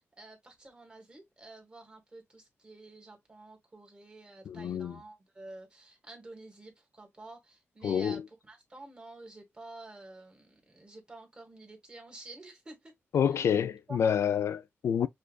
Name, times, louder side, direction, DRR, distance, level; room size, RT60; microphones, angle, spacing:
voice 1, 0.0-12.9 13.3-13.4 13.9-14.0, right 2 dB, 20° right, 1.5 m, -50 dB
voice 2, 4.5-5.0 7.8-8.2 13.1-15.1, left 8 dB, 70° left, 0.3 m, -28 dB
6.7 x 2.4 x 2.3 m
wide cardioid pair, 165°, 5 cm